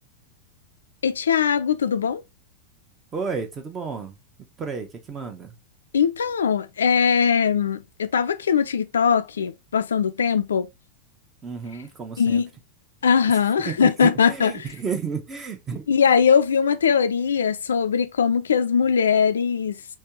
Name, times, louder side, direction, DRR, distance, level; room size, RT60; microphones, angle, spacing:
voice 1, 1.0-2.2 5.9-10.7 12.2-12.5 13.0-14.7 15.9-19.8, left 6 dB, 70° left, 0.3 m, -21 dB
voice 2, 3.1-4.2 4.6-5.5 11.4-12.4 13.6-15.8, right 5 dB, 20° right, 0.8 m, -32 dB
3.3 x 2.9 x 2.8 m
figure-of-eight pair, 90°, 0 cm